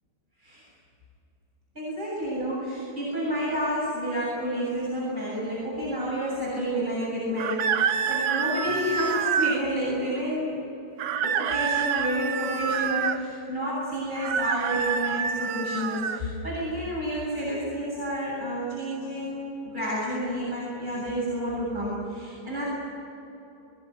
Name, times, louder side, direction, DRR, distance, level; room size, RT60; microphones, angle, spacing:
voice 1, 1.7-10.6 11.2-19.4 19.6-22.6, equal, 25° right, -7 dB, 7.9 m, -30 dB
sound 1, 7.4-9.6 11.0-13.2 14.1-16.2, right 7 dB, 85° right, 1.7 m, -27 dB
22.0 x 21.5 x 9.6 m, 2.9 s
omnidirectional pair, 2.1 m